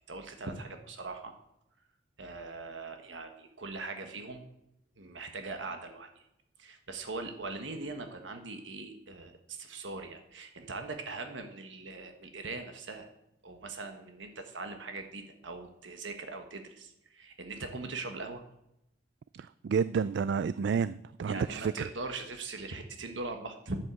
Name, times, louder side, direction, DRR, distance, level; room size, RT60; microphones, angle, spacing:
voice 1, 0.1-1.3 2.2-4.4 5.0-6.1 6.6-13.1 13.4-18.4 21.2-23.8, right 3 dB, 80° right, 5 dB, 1.4 m, -41 dB
voice 2, 19.3-21.9, right 6 dB, 65° right, 16 dB, 0.3 m, -30 dB
11.0 x 7.5 x 8.2 m, 0.83 s
head